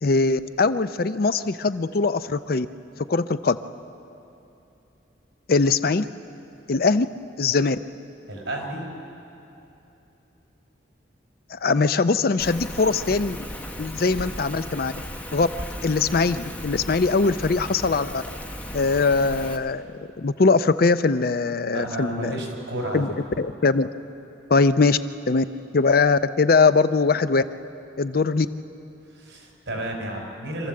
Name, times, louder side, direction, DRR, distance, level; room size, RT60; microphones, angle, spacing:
voice 1, 0.0-2.7 3.1-3.6 5.5-6.1 6.7-7.1 7.4-7.8 11.5-13.4 13.8-14.9 15.3-15.5 15.8-18.2 18.7-22.4 22.9-23.9 24.5-25.0 25.3-25.4 25.7-27.4 28.0-28.5, left 4 dB, 50° left, 12 dB, 0.5 m, -21 dB
voice 2, 8.3-8.9 21.7-23.0 29.2-30.7, right 1 dB, 80° right, 1 dB, 4.7 m, -31 dB
Rain, 12.4-19.6, equal, 10° left, 1.0 m, -36 dB
26.5 x 13.5 x 7.6 m, 2.9 s
head